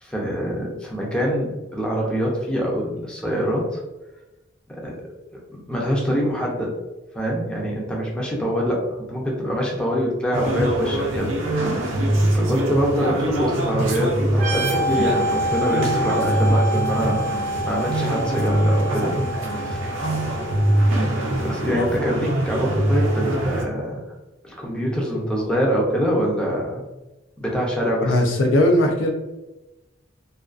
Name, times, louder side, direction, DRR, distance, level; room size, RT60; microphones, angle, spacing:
voice 1, 0.0-3.8 4.7-4.9 5.5-6.8 7.1-11.3 12.3-17.4 17.7-19.2 19.5-19.9 21.4-24.0 24.4-26.8 27.4-28.2, equal, 5° left, -3 dB, 0.5 m, -24 dB
sound 1, 10.3-23.6, right 1 dB, 85° right, 0.5 m, -23 dB
sound 2, 14.3-21.8, equal, 40° right, 0.5 m, -28 dB
voice 2, 28.0-29.1, left 1 dB, 80° left, 3 dB, 0.4 m, -18 dB
2.4 x 2.3 x 2.3 m, 1.0 s
head